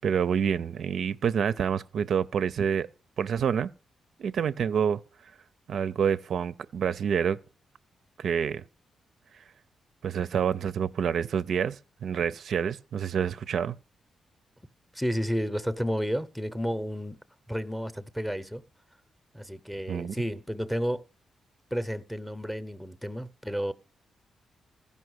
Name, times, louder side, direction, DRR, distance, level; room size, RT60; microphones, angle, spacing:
voice 1, 0.0-2.9 3.2-3.7 4.2-5.0 5.7-7.4 8.2-8.6 10.0-13.7 19.9-20.1, right 7 dB, 65° right, 0.4 m, -27 dB
voice 2, 14.9-17.2 17.5-18.6 19.3-21.0 21.7-23.7, equal, ahead, 0.6 m, -31 dB
15.0 x 5.4 x 6.3 m
cardioid pair, 120°, 0 cm